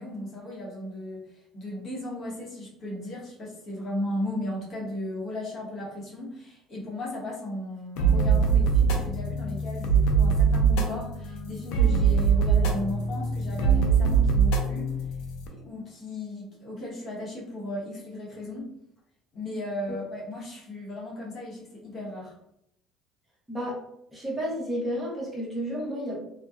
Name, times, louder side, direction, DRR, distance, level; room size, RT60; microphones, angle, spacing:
voice 1, 0.0-14.9 15.5-18.7 19.3-22.3, left 1 dB, 45° left, -4 dB, 0.9 m, -36 dB
sound 1, 8.0-15.5, right 5 dB, 80° left, 0.4 m, -23 dB
voice 2, 23.5-23.8 24.1-26.2, equal, 15° right, -5 dB, 1.0 m, -31 dB
2.7 x 2.2 x 2.3 m, 0.77 s
cardioid pair, 110°, 0 cm